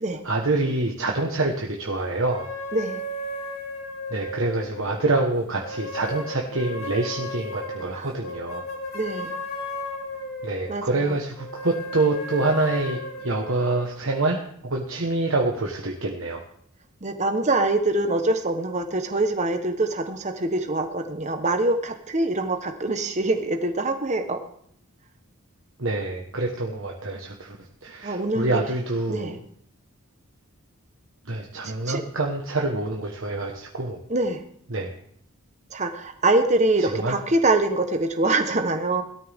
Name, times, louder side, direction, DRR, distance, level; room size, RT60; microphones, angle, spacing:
voice 1, 0.2-2.5 4.1-8.6 10.4-16.4 25.8-27.6 27.8-29.4 31.3-34.0 34.7-34.9 36.8-37.2, right 2 dB, 60° right, 0 dB, 1.4 m, -26 dB
sound 1, 2.3-5.1 5.6-10.8 11.4-13.8, left 1 dB, 70° left, 2.9 m, -35 dB
voice 2, 2.7-3.0 7.9-8.1 8.9-9.4 10.7-11.2 17.0-24.4 28.0-28.6 29.1-29.4 31.8-32.0 34.1-34.4 35.7-39.0, right 2 dB, 30° right, 6 dB, 1.1 m, -24 dB
18.0 x 13.0 x 3.6 m, 0.66 s
head